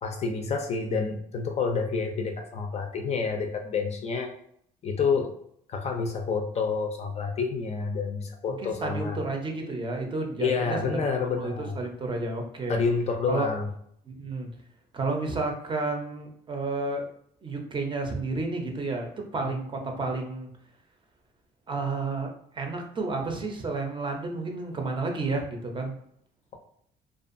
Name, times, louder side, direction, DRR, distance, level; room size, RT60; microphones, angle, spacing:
voice 1, 0.0-4.3 4.8-5.3 5.7-9.2 10.4-11.8 12.7-13.7 19.5-19.6, left 5 dB, 40° left, 4 dB, 0.4 m, -28 dB
voice 2, 8.6-10.8 11.4-12.8 13.3-13.5 14.1-14.5 14.9-17.1 17.4-20.5 21.7-25.9, right 3 dB, 30° right, 2 dB, 0.6 m, -31 dB
2.5 x 2.3 x 2.5 m, 0.69 s
cardioid pair, 110°, 17 cm